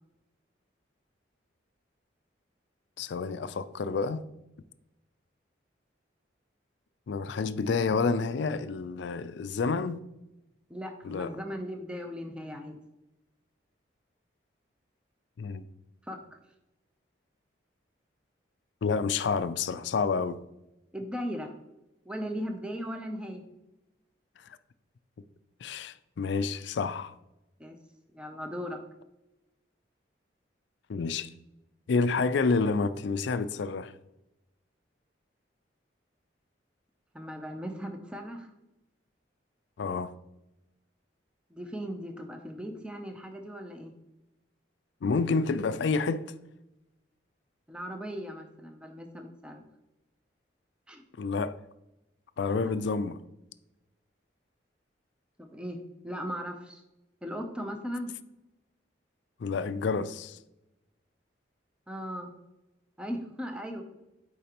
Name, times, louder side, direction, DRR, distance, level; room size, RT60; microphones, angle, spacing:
voice 1, 3.0-4.2 7.1-10.0 11.0-11.3 15.4-15.6 18.8-20.4 25.6-27.1 30.9-31.3 31.9-33.9 39.8-40.1 45.0-46.2 51.2-51.5 52.4-53.2 59.4-60.4, left 4 dB, 70° left, 0.4 m, -29 dB
voice 2, 10.7-12.8 16.0-16.4 20.9-21.5 22.1-23.4 27.6-27.8 28.1-28.8 37.1-38.5 41.5-43.9 47.7-49.6 50.9-51.0 52.5-52.7 55.4-56.8 57.2-58.1 61.9-62.3 63.0-63.8, equal, 5° right, 0.5 m, -38 dB
8.3 x 4.8 x 2.9 m
head